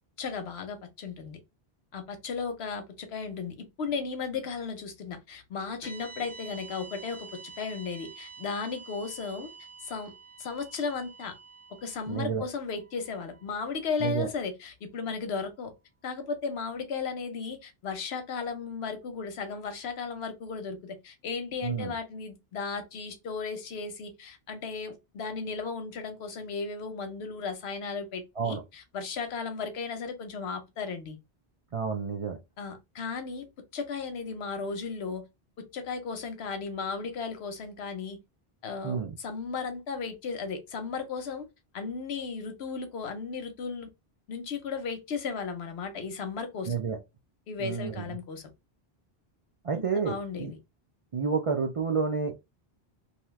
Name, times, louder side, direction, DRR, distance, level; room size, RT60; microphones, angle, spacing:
voice 1, 0.2-1.4 1.9-7.3 7.6-9.5 9.8-10.1 10.4-11.3 11.8-15.7 16.0-31.2 32.6-33.5 33.7-35.2 35.6-38.2 38.6-41.4 41.7-43.9 44.3-46.7 47.5-48.5 49.7-50.6, left 5 dB, 80° left, 1.0 m, -35 dB
sound 1, 5.8-14.1, right 4 dB, 50° left, 0.8 m, -48 dB
voice 2, 12.1-12.5 14.0-14.3 21.6-21.9 28.4-28.6 31.7-32.4 38.8-39.2 46.7-47.0 47.6-48.0 49.6-50.5 51.1-52.4, right 5 dB, 55° right, 0.4 m, -30 dB
2.7 x 2.3 x 3.0 m
omnidirectional pair, 1.0 m